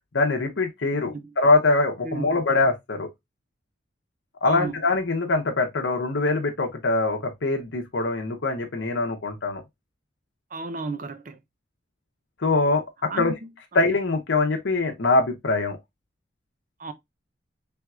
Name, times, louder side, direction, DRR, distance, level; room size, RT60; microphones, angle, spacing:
voice 1, 0.1-3.1 4.4-9.6 12.4-13.3 13.7-15.8, left 3 dB, 75° left, 0.8 m, -23 dB
voice 2, 0.9-1.3 2.0-2.4 4.4-4.8 10.5-11.4 13.1-13.5 16.8-16.9, right 3 dB, 45° right, 0.6 m, -33 dB
4.5 x 3.5 x 2.3 m
head